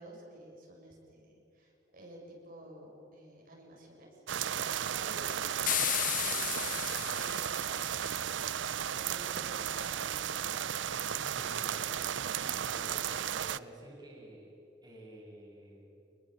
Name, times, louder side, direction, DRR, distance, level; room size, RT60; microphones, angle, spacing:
voice 1, 0.0-4.2 4.7-5.6 6.1-11.1, right 1 dB, 50° right, -1 dB, 6.6 m, -53 dB
sound 1, 4.3-13.6, right 9 dB, 85° right, 0.6 m, -34 dB
voice 2, 4.8-5.2 11.0-11.9 12.4-13.1 13.3-15.9, right 1 dB, 25° right, -2 dB, 6.9 m, -51 dB
sound 2, 5.7-8.1, left 12 dB, 50° left, 0.8 m, -34 dB
28.5 x 21.5 x 7.7 m, 2.7 s
head